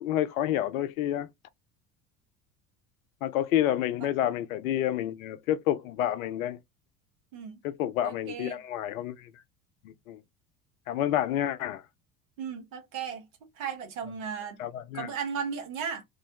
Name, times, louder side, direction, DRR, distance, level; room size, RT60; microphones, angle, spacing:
voice 1, 0.0-1.3 3.2-6.6 7.6-9.3 9.8-10.2 10.9-11.8 14.6-15.1, left 12 dB, 65° left, 0.5 m, -29 dB
voice 2, 8.0-8.6 12.4-13.3 13.6-14.6 14.9-16.0, right 7 dB, 65° right, 0.9 m, -35 dB
2.5 x 2.0 x 2.7 m
figure-of-eight pair, 65°, 44 cm